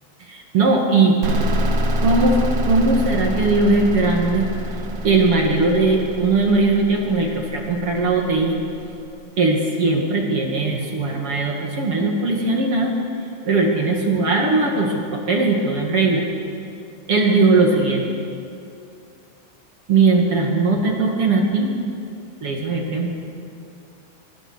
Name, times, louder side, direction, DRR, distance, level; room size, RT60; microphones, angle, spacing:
voice 1, 0.2-1.2 2.0-2.4 2.7-4.5 5.0-8.6 9.4-12.9 13.4-16.2 17.1-18.1 19.9-21.7 22.4-23.1, right 3 dB, 40° right, 1 dB, 2.2 m, -19 dB
sound 1, 1.2-8.8, equal, 65° right, 3.8 m, -26 dB
25.0 x 25.0 x 6.4 m, 2.5 s
omnidirectional pair, 5.2 m